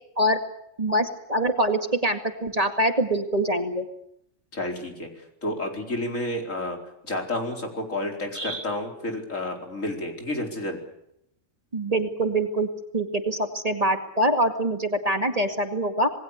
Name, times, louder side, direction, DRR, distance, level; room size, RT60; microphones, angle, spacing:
voice 1, 0.8-3.9 8.3-8.6 11.7-12.7 12.9-16.1, right 1 dB, 30° right, 6 dB, 2.2 m, -24 dB
voice 2, 4.5-6.8 7.0-10.8, left 1 dB, 75° left, 3 dB, 4.8 m, -30 dB
27.5 x 20.0 x 8.3 m, 0.78 s
omnidirectional pair, 1.4 m